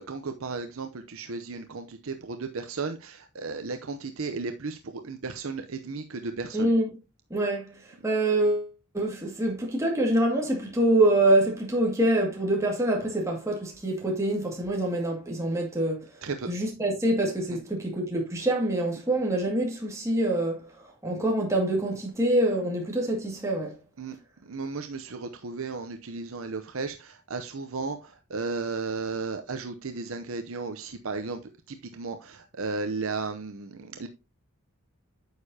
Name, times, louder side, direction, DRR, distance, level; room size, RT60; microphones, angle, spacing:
voice 1, 0.0-6.7 16.2-16.5 17.5-17.6 24.0-24.2 24.4-31.4 31.7-34.1, right 4 dB, 70° right, 0.7 m, -34 dB
voice 2, 6.5-6.9 7.3-8.7 8.9-16.1 16.5-23.8, right 1 dB, 15° right, 2.1 m, -25 dB
9.4 x 6.6 x 2.8 m
head